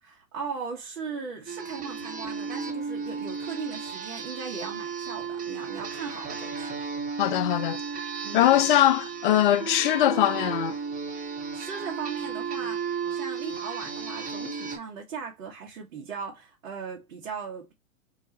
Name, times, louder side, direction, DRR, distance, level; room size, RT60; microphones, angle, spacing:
voice 1, 0.0-6.7 8.2-8.7 11.5-17.7, right 5 dB, 70° right, 1.5 m, -38 dB
sound 1, 1.5-14.8, right 5 dB, 20° right, 1.0 m, -34 dB
voice 2, 7.2-7.8 8.3-10.8, left 13 dB, 40° left, 0.4 m, -21 dB
4.7 x 2.3 x 4.1 m
hypercardioid pair, 115°, 42 cm